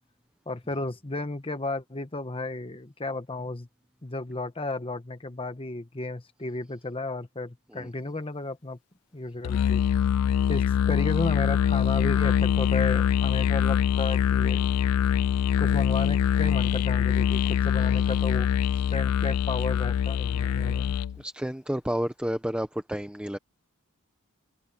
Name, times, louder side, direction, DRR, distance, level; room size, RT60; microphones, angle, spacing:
voice 1, 0.5-3.7 4.0-8.8 9.1-9.8 10.5-14.7 15.6-18.5 18.9-20.9, left 2 dB, 25° left, 1.2 m, -33 dB
Musical instrument, 9.4-21.2, left 8 dB, 75° left, 0.3 m, -24 dB
voice 2, 21.2-23.4, equal, 5° right, 0.9 m, -31 dB
head